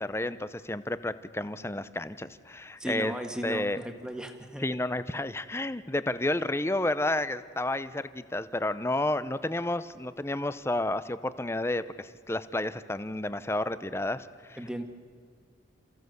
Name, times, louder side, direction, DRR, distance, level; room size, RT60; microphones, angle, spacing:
voice 1, 0.0-3.1 3.4-3.8 4.6-14.8, left 1 dB, 15° left, 14 dB, 0.6 m, -31 dB
voice 2, 2.8-4.6 14.6-14.8, right 1 dB, 5° right, 5 dB, 1.6 m, -36 dB
28.0 x 15.5 x 8.0 m, 2.1 s
head